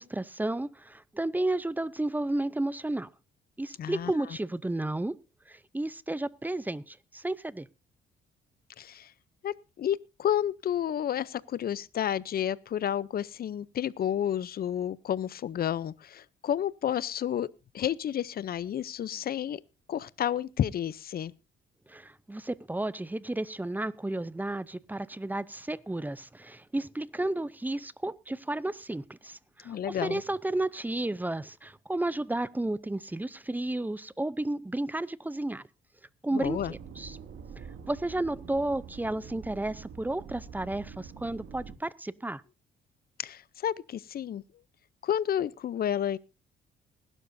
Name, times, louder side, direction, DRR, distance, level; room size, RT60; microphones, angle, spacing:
voice 1, 0.0-3.1 3.6-5.2 5.5-7.7 21.9-35.7 36.2-37.2 37.9-42.4, right 2 dB, 10° right, 0.6 m, -32 dB
voice 2, 3.8-4.1 8.8-9.1 9.4-17.5 17.7-19.6 19.9-21.3 29.6-30.2 36.3-36.7 43.2-44.4 45.0-46.2, left 10 dB, 50° left, 0.6 m, -31 dB
sound 1, 36.4-41.8, right 6 dB, 75° right, 2.3 m, -45 dB
20.5 x 12.0 x 2.7 m
cardioid pair, 90°, 20 cm